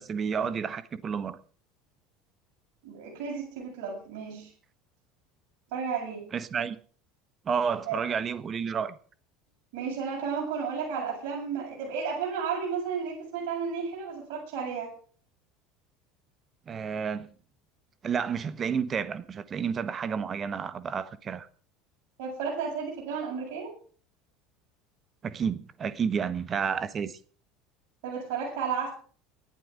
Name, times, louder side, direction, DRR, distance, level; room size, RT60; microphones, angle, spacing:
voice 1, 0.0-1.4 6.3-6.8 7.4-9.0 16.7-17.3 18.0-21.5 25.2-27.2, right 6 dB, 30° right, 1.3 m, -30 dB
voice 2, 2.8-4.5 5.7-6.2 7.9-8.0 9.7-14.9 22.2-23.7 28.0-28.9, right 6 dB, 55° right, 7.9 m, -33 dB
18.5 x 11.5 x 5.1 m
figure-of-eight pair, 70°, 0 cm